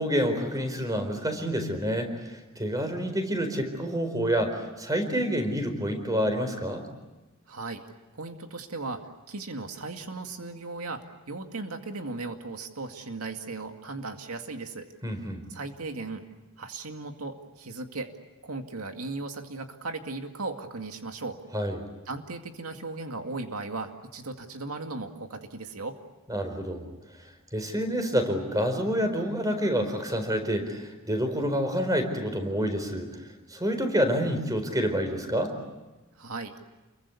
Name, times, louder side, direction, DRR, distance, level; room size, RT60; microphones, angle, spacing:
voice 1, 0.0-6.8 15.0-15.4 21.5-21.8 26.3-26.9 27.5-33.1 33.5-35.5, equal, 15° right, 7 dB, 4.4 m, -28 dB
voice 2, 7.5-7.8 8.1-14.9 15.5-16.2 16.6-18.1 18.4-21.4 22.1-26.0 36.2-36.5, right 3 dB, 85° right, 5 dB, 2.2 m, -37 dB
29.0 x 23.0 x 8.4 m, 1.1 s
head